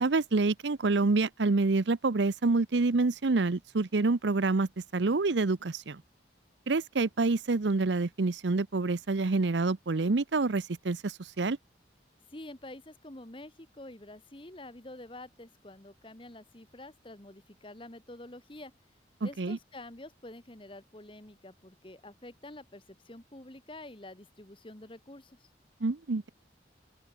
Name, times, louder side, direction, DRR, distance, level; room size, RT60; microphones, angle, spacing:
voice 1, 0.0-6.0 6.7-11.6 19.2-19.6 25.8-26.3, right 3 dB, 80° right, 0.7 m, -27 dB
voice 2, 12.3-18.7 19.2-25.5, left 1 dB, 30° left, 1.6 m, -48 dB
open air
head